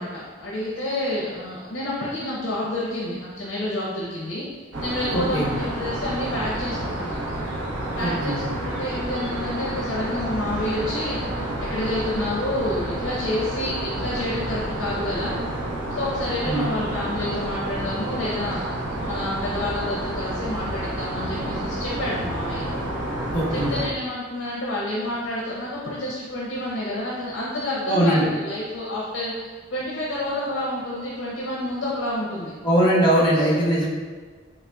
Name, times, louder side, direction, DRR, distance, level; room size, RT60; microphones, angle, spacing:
voice 1, 0.0-4.5 4.8-7.2 7.9-15.4 15.9-18.7 19.0-22.7 23.5-32.5 33.3-33.6, left 1 dB, 70° left, -5 dB, 0.6 m, -29 dB
sound 1, 4.7-23.9, right 1 dB, 75° right, 0.6 m, -29 dB
voice 2, 5.1-5.5 8.0-8.4 16.4-16.7 23.3-23.7 27.9-28.3 32.6-33.9, right 1 dB, 25° left, -7 dB, 1.0 m, -21 dB
3.9 x 3.4 x 2.2 m, 1.5 s
head